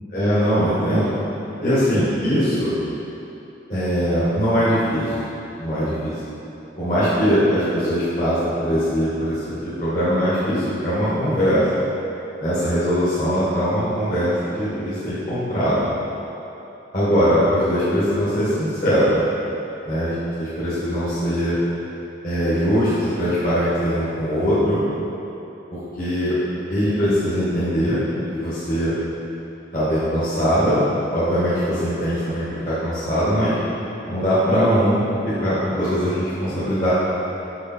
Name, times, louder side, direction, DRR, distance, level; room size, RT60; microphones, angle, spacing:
voice 1, 0.1-1.1 1.6-2.7 3.7-5.1 5.6-6.1 6.8-11.6 12.4-15.8 16.9-19.2 19.9-21.6 22.2-24.8 25.7-26.3 26.7-28.0 28.3-28.9 29.7-30.8 31.1-33.6 34.1-36.9, equal, 50° left, -11 dB, 1.7 m, -21 dB
6.7 x 6.0 x 4.5 m, 3.0 s
head